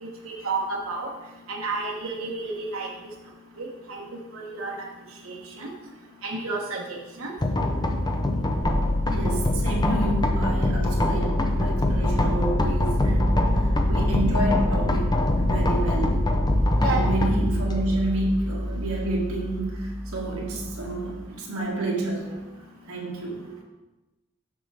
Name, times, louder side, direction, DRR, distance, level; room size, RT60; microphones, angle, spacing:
voice 1, 0.0-1.1 1.5-2.9 3.6-4.0 4.3-4.9 5.2-5.7 6.2-7.3 16.8-17.0, right 3 dB, 70° right, -1 dB, 1.2 m, -31 dB
sound 1, 7.4-21.3, left 1 dB, 20° left, 0.5 m, -25 dB
sound 2, 8.6-16.6, left 1 dB, 25° right, 0.7 m, -27 dB
voice 2, 9.1-15.2 15.5-16.2 16.8-22.4 22.9-23.4, right 1 dB, 85° right, -2 dB, 1.7 m, -29 dB
7.0 x 6.5 x 3.4 m, 1.1 s
head